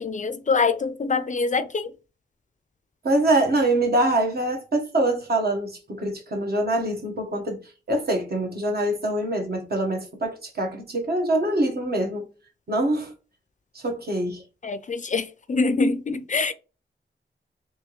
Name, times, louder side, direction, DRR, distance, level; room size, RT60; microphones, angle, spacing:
voice 1, 0.0-1.9 14.6-16.5, left 4 dB, 40° left, 0.4 m, -24 dB
voice 2, 3.0-7.6 7.9-12.3 12.7-13.1 13.7-14.4, right 1 dB, 55° right, 1.3 m, -24 dB
3.4 x 2.8 x 3.1 m
cardioid pair, 65°, 19 cm